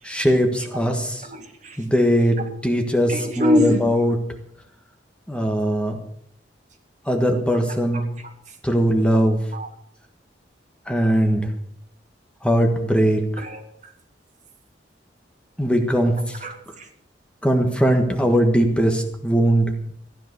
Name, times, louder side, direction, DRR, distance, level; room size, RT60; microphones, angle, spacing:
voice 1, 0.0-1.2 1.8-4.1 5.3-6.0 7.1-8.0 8.6-9.4 10.9-11.5 12.4-13.2 15.6-16.2 17.4-19.7, equal, 5° left, 4 dB, 1.5 m, -20 dB
voice 2, 0.6-0.9 1.2-1.9 2.2-2.3 3.1-4.0 7.9-8.6 9.5-9.7 13.4-13.9 16.4-16.9, left 1 dB, 45° right, 4 dB, 2.0 m, -26 dB
15.5 x 10.5 x 6.8 m, 0.71 s
head